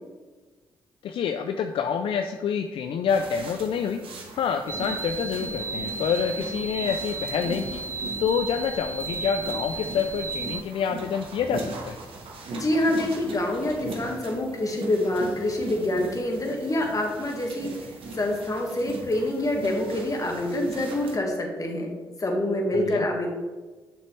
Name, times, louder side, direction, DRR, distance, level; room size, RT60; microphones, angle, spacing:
voice 1, 1.0-4.0 4.4-7.8 8.2-12.0 22.7-23.0, left 7 dB, 65° left, 7 dB, 0.4 m, -27 dB
sound 1, 3.1-21.2, right 3 dB, 70° right, 1.3 m, -39 dB
sound 2, 4.7-10.6, right 4 dB, 30° right, 0.4 m, -34 dB
voice 2, 12.5-17.7 18.1-21.9 22.2-23.3, left 1 dB, 35° left, 1 dB, 1.7 m, -26 dB
6.7 x 6.1 x 3.2 m, 1.3 s
supercardioid pair, 50°, 10 cm